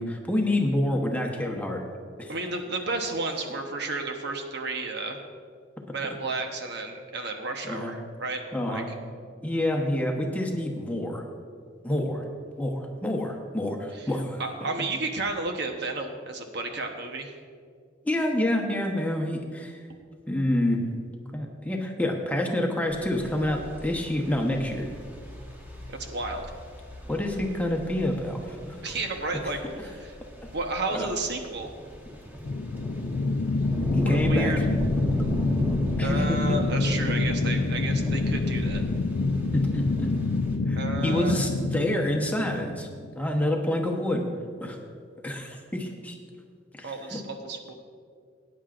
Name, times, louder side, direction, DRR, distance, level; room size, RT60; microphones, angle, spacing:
voice 1, 0.0-1.8 2.2-2.3 7.6-7.9 8.5-8.9 9.4-11.2 11.8-12.2 12.6-14.4 18.0-19.8 20.3-20.8 21.3-24.9 27.1-28.8 30.4-30.5 30.9-31.1 33.9-34.5 35.9-36.6 39.5-40.1 40.7-42.9 43.1-44.2 44.6-44.8 45.2-46.2 46.7-47.2, left 1 dB, 10° left, 1 dB, 1.0 m, -28 dB
voice 2, 2.3-5.2 5.9-8.4 8.7-8.9 13.9-14.1 14.4-17.3 25.9-26.5 28.8-30.1 30.5-31.7 34.0-34.7 36.0-38.8 40.8-41.4 46.8-47.7, right 2 dB, 65° right, 4 dB, 1.0 m, -32 dB
sound 1, 22.9-40.6, equal, 10° right, 1.3 m, -36 dB
sound 2, 32.4-43.4, left 3 dB, 70° left, 0.5 m, -27 dB
19.0 x 9.4 x 2.5 m, 2.1 s
head